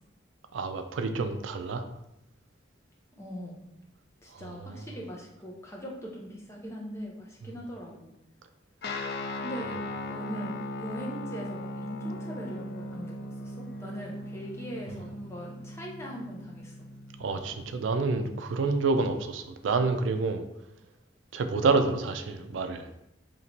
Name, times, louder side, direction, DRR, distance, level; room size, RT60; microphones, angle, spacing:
voice 1, 0.5-1.8 4.3-4.8 17.2-20.4 21.3-22.9, right 4 dB, 85° right, 7 dB, 0.4 m, -28 dB
voice 2, 3.2-3.6 4.2-8.1 9.4-9.8 10.1-16.9, equal, 15° left, -2 dB, 0.6 m, -41 dB
Guitar, 8.8-18.6, left 1 dB, 55° left, 0.3 m, -39 dB
2.9 x 2.7 x 4.3 m, 0.84 s
head